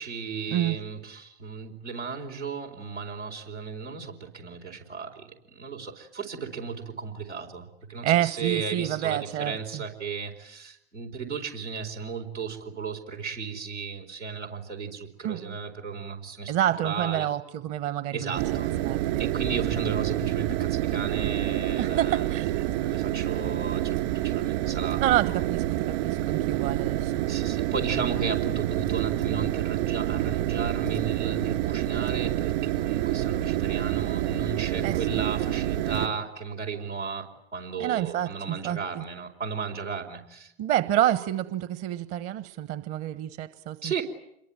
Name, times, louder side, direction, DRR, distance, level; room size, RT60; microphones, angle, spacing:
voice 1, 0.0-16.5 16.8-17.3 18.1-18.7 19.2-22.3 22.7-24.0 24.2-25.0 27.3-40.5 43.8-44.0, right 5 dB, 90° right, -1 dB, 4.6 m, -35 dB
voice 2, 8.0-9.8 15.2-15.6 16.5-18.4 18.8-19.3 21.8-22.6 25.0-27.1 34.8-35.2 37.8-39.0 40.6-44.0, right 12 dB, 45° right, 13 dB, 1.3 m, -28 dB
sound 1, 18.4-36.1, right 14 dB, 60° right, 3.5 m, -28 dB
27.5 x 22.5 x 9.1 m, 0.79 s
figure-of-eight pair, 80°, 34 cm